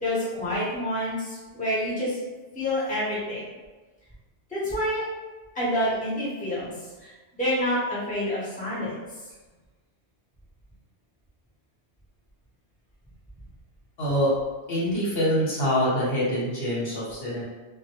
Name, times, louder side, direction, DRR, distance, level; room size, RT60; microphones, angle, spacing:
voice 1, 0.0-2.2 2.5-3.4 4.5-5.0 5.5-6.7 7.4-8.9, left 1 dB, 10° left, -9 dB, 0.7 m, -27 dB
voice 2, 14.0-14.3 14.7-17.4, equal, 65° left, -7 dB, 1.0 m, -25 dB
2.2 x 2.1 x 2.8 m, 1.2 s
omnidirectional pair, 1.1 m